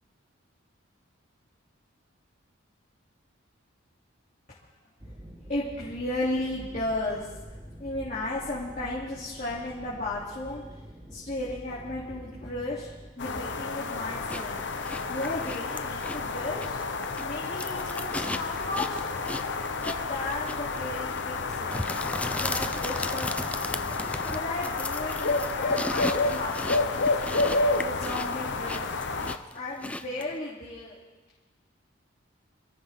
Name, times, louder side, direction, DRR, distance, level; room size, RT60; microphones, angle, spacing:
sound 1, 5.0-13.1, equal, 20° right, 1.7 m, -46 dB
voice 1, 5.5-7.3 7.8-10.8 11.1-12.9 13.2-14.6 15.1-16.8 17.1-19.0 19.8-22.0 22.4-23.3 24.3-27.1 27.8-29.0 29.5-31.0, left 2 dB, 40° left, -8 dB, 3.1 m, -34 dB
sound 2, 13.2-29.4, left 3 dB, 60° left, 0.9 m, -30 dB
sound 3, 14.3-30.4, left 2 dB, 5° left, 0.4 m, -36 dB
28.0 x 13.5 x 3.8 m, 1.2 s
head